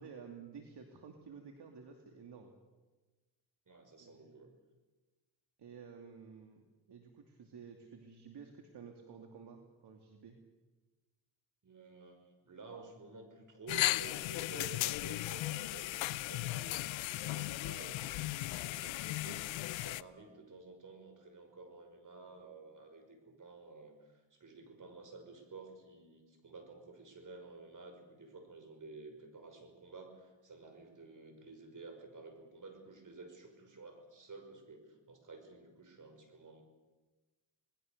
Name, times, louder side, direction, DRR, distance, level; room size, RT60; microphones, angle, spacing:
voice 1, 0.0-2.5 4.0-4.3 5.6-6.6 6.9-10.4, right 6 dB, 60° right, 3 dB, 2.7 m, -52 dB
voice 2, 3.7-4.6 11.6-36.6, right 3 dB, 45° right, 6 dB, 5.8 m, -52 dB
sound 1, 13.7-20.0, left 17 dB, 90° left, 0.6 m, -36 dB
28.0 x 19.5 x 6.7 m, 1.2 s
cardioid pair, 80°, 45 cm